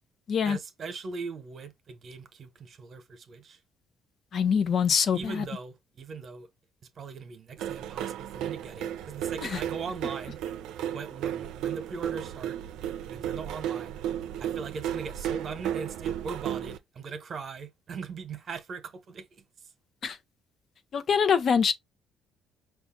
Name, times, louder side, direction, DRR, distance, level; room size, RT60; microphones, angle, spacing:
voice 1, 0.4-3.6 5.1-6.5 7.0-10.4 10.9-12.6 13.1-14.0 14.4-19.4, right 5 dB, 50° right, 1.0 m, -40 dB
voice 2, 4.3-5.5 9.4-9.6 20.0-20.2 20.9-21.7, left 6 dB, 55° left, 0.7 m, -24 dB
sound 1, 7.6-16.8, right 10 dB, 80° right, 0.4 m, -34 dB
5.1 x 2.4 x 3.7 m
supercardioid pair, 80°, 0 cm